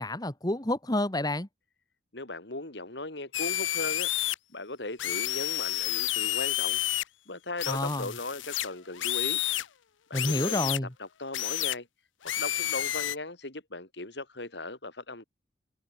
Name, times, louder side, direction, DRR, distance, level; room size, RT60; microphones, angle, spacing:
voice 1, 0.0-1.5 7.7-8.1 10.1-10.9, left 1 dB, 20° left, 1.7 m, -29 dB
voice 2, 2.1-4.1 4.5-6.8 7.3-9.4 10.1-10.7 11.0-11.9 12.4-15.2, left 2 dB, 65° left, 3.1 m, -38 dB
sound 1, 3.3-4.3 5.0-7.0 7.6-9.7 10.1-10.8 11.3-11.8 12.2-13.2, left 14 dB, 85° left, 0.6 m, -30 dB
head